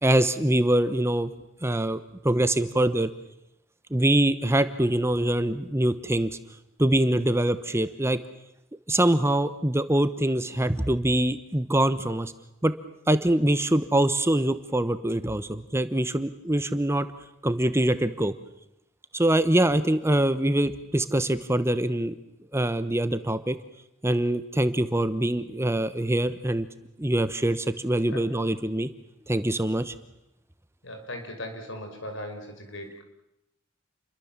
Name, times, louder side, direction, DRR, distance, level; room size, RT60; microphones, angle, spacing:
voice 1, 0.0-1.3 1.6-3.1 3.9-6.4 6.8-8.2 8.9-12.3 12.6-12.7 13.1-17.1 17.4-18.3 19.1-22.1 22.5-23.6 24.0-26.7 27.0-28.9 29.3-29.9, right 1 dB, 15° right, 12 dB, 1.0 m, -24 dB
voice 2, 30.8-33.0, left 1 dB, 70° left, 5 dB, 5.5 m, -38 dB
29.5 x 23.0 x 7.4 m, 0.87 s
head